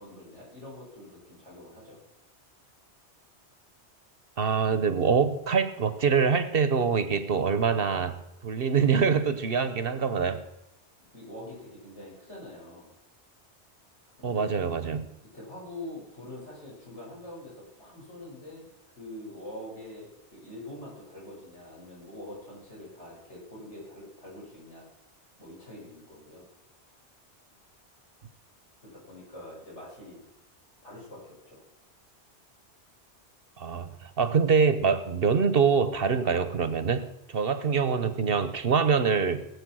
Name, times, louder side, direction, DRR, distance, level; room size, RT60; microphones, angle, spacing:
voice 1, 0.0-2.0 11.1-12.9 14.2-14.5 15.3-18.7 19.0-24.9 25.4-26.4 28.8-30.2 30.8-31.6, left 1 dB, 80° left, -4 dB, 6.5 m, -44 dB
voice 2, 4.4-10.4 14.2-15.1 33.6-39.5, right 5 dB, 55° right, 12 dB, 1.1 m, -25 dB
19.0 x 8.7 x 6.3 m, 0.91 s
omnidirectional pair, 1.2 m